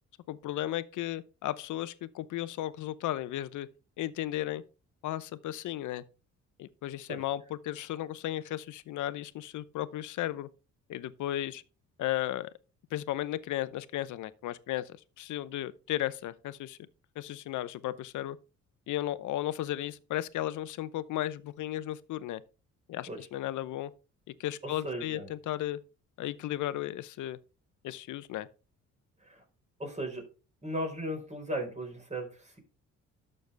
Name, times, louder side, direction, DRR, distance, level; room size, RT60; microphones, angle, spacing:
voice 1, 0.3-3.7 4.0-4.6 5.0-6.0 6.6-10.5 10.9-11.6 12.0-12.5 12.9-16.8 17.2-18.4 18.9-22.4 22.9-23.9 24.3-25.8 26.2-27.4 27.8-28.5, left 13 dB, 80° left, 0.8 m, -35 dB
voice 2, 24.6-25.3 29.2-29.4 29.8-30.3 30.6-32.6, right 1 dB, 25° right, 4.5 m, -36 dB
11.5 x 6.7 x 3.4 m
cardioid pair, 90°, 30 cm